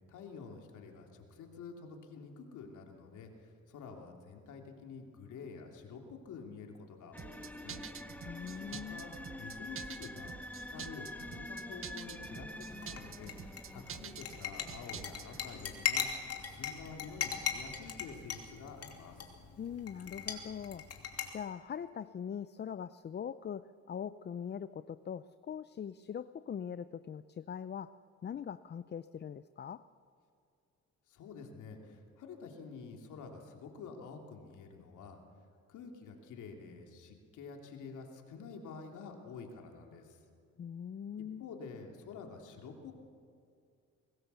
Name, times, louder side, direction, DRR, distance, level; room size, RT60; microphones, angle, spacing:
voice 1, 0.1-7.8 8.3-13.3 13.7-16.1 16.4-19.2 31.1-35.2 35.7-40.2 41.4-42.9, left 5 dB, 80° left, 2 dB, 3.1 m, -49 dB
sound 1, 7.1-18.1, left 1 dB, 5° left, 1.4 m, -48 dB
sound 2, 7.2-15.4, right 8 dB, 45° right, 0.9 m, -48 dB
voice 2, 8.2-9.0 19.6-20.8 21.3-27.9 28.2-29.8 40.6-41.4, left 8 dB, 35° left, 14 dB, 0.5 m, -42 dB
sound 3, 12.6-21.3, left 8 dB, 55° left, 2.9 m, -40 dB
24.0 x 19.5 x 7.0 m, 2.4 s
cardioid pair, 90°, 30 cm